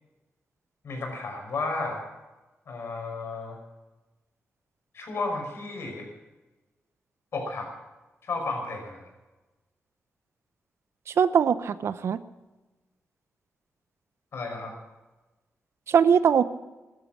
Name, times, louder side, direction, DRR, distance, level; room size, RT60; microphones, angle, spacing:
voice 1, 0.8-2.0 2.7-3.6 4.9-6.1 7.3-7.7 8.2-9.1 14.3-14.7, left 3 dB, 65° left, 2 dB, 5.6 m, -33 dB
voice 2, 11.2-12.2 15.9-16.4, right 7 dB, 75° right, 14 dB, 0.9 m, -21 dB
15.5 x 12.5 x 7.4 m, 1.1 s
wide cardioid pair, 105°, 5 cm